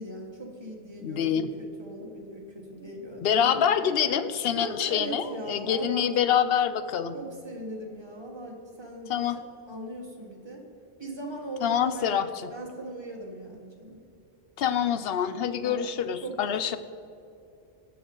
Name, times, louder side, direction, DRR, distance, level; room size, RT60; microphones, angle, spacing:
voice 1, 0.0-3.5 4.5-6.1 7.1-9.3 9.7-10.6 11.0-14.0 15.6-16.0 16.2-16.8, right 1 dB, 25° right, -1 dB, 1.7 m, -39 dB
voice 2, 1.0-1.5 3.2-7.2 9.1-9.4 11.6-12.5 14.6-16.8, left 8 dB, 65° left, 12 dB, 0.8 m, -26 dB
17.0 x 6.9 x 3.8 m, 2.6 s
omnidirectional pair, 1.1 m